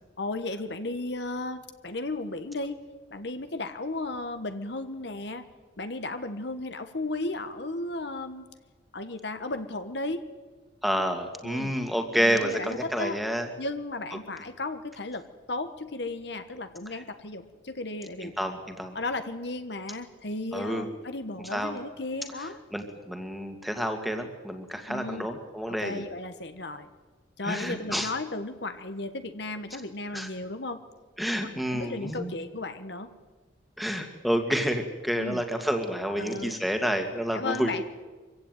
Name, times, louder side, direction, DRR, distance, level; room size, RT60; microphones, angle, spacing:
voice 1, 0.2-2.8 3.1-5.4 5.8-8.5 8.9-10.2 11.4-11.7 12.2-13.2 13.6-18.3 18.9-22.6 24.9-25.3 25.8-26.9 27.4-30.8 31.7-33.1 35.2-35.4 36.2-36.6 37.3-37.8, left 2 dB, 60° left, 9 dB, 1.3 m, -34 dB
voice 2, 10.8-13.5 16.9-17.0 18.2-19.0 20.5-20.9 21.5-21.8 22.7-26.0 27.4-28.1 30.1-30.3 31.2-32.3 33.8-37.7, equal, ahead, 5 dB, 2.1 m, -29 dB
24.5 x 16.0 x 9.2 m, 1.4 s
head